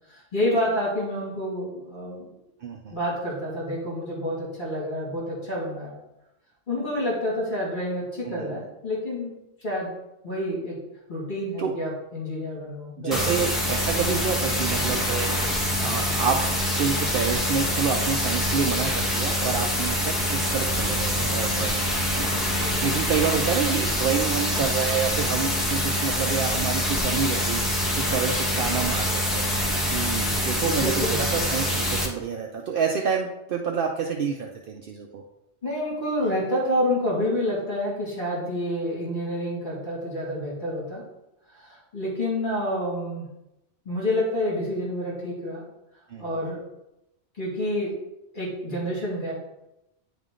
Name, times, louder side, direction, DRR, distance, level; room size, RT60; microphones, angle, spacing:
voice 1, 0.1-2.3 2.9-5.9 6.7-9.3 9.6-9.9 10.2-10.8 11.1-13.4 22.6-22.7 30.8-31.3 35.6-41.0 41.5-43.3 43.9-45.6 46.2-46.6 47.4-47.9 48.3-49.3, left 1 dB, 45° left, -6 dB, 2.4 m, -28 dB
voice 2, 2.6-3.0 8.2-8.6 11.6-11.7 13.0-15.3 15.8-16.4 16.7-29.5 29.9-35.2 46.1-46.3, right 6 dB, 60° right, 1 dB, 0.8 m, -28 dB
sound 1, 13.1-32.1, equal, ahead, 1.1 m, -25 dB
9.7 x 3.6 x 3.7 m, 0.90 s
omnidirectional pair, 1.1 m